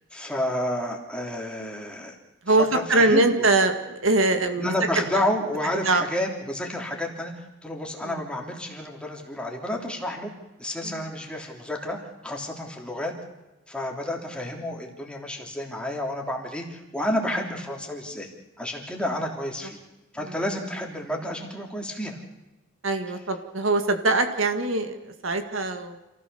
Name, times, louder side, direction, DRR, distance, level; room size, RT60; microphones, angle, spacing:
voice 1, 0.1-2.2 2.5-3.5 4.6-10.3 10.6-13.1 13.7-18.3 18.6-19.8 20.1-22.2 23.1-23.2, left 1 dB, 5° left, 1 dB, 3.2 m, -30 dB
voice 2, 2.5-5.0 5.9-6.0 10.8-10.9 22.8-25.0 25.2-26.0, right 2 dB, 65° right, 7 dB, 1.9 m, -22 dB
27.5 x 16.0 x 7.0 m, 1.0 s
head